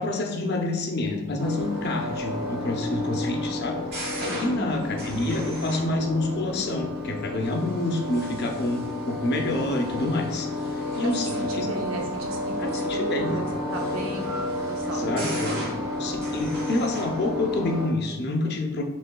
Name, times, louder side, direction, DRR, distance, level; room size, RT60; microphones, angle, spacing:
voice 1, 0.0-3.8 4.4-11.7 12.6-13.4 14.8-15.5 16.0-18.8, left 2 dB, 45° left, 2 dB, 0.6 m, -28 dB
sound 1, 1.4-17.9, left 2 dB, 45° right, 1.3 m, -31 dB
voice 2, 4.4-4.8 11.0-13.4 13.7-15.7, right 2 dB, 60° right, 0 dB, 0.7 m, -35 dB
6.4 x 3.2 x 2.3 m, 1.2 s
head